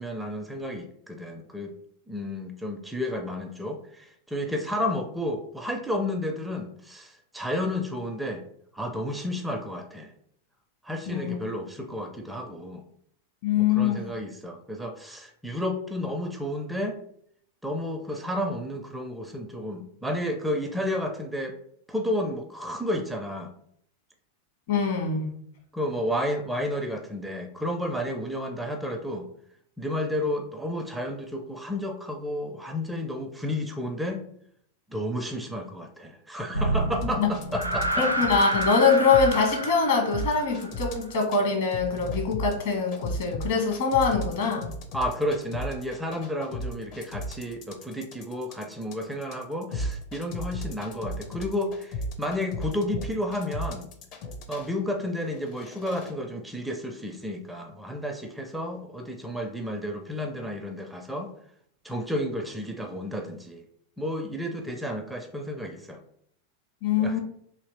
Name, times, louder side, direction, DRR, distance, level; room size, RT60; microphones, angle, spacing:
voice 1, 0.0-1.7 2.1-8.4 8.7-10.1 10.8-12.8 13.6-17.0 17.6-21.6 21.9-23.5 25.7-29.3 29.8-34.2 34.9-38.1 44.9-53.9 54.5-61.3 61.8-63.6 64.0-66.0 67.0-67.2, left 1 dB, 5° right, 5 dB, 0.4 m, -31 dB
voice 2, 11.1-11.4 13.4-14.0 24.7-25.3 37.2-37.3 38.0-44.7 66.8-67.2, left 5 dB, 55° left, 1 dB, 1.3 m, -23 dB
sound 1, 36.5-40.9, right 1 dB, 85° right, 0.4 m, -29 dB
sound 2, 36.9-39.6 40.1-41.4 41.7-54.7 55.3-56.1, equal, 40° left, 0.6 m, -35 dB
3.2 x 2.8 x 4.2 m, 0.68 s
figure-of-eight pair, 90°, 0 cm